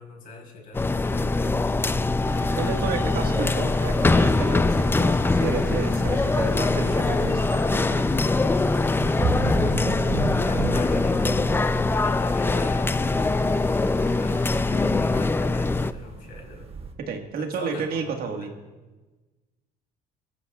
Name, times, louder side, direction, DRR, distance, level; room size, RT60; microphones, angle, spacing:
voice 1, 0.0-1.9 9.4-16.7 17.4-18.5, left 2 dB, 55° left, 0 dB, 4.1 m, -42 dB
sound 1, 0.7-15.9, left 3 dB, 15° left, 0.4 m, -23 dB
sound 2, 1.1-16.9, right 4 dB, 35° right, 1.2 m, -35 dB
sound 3, 2.2-15.0, right 2 dB, 20° right, 2.2 m, -43 dB
voice 2, 2.6-8.1 17.1-18.5, right 5 dB, 65° right, 3 dB, 1.6 m, -31 dB
21.0 x 13.5 x 2.4 m, 1.2 s
cardioid pair, 110°, 17 cm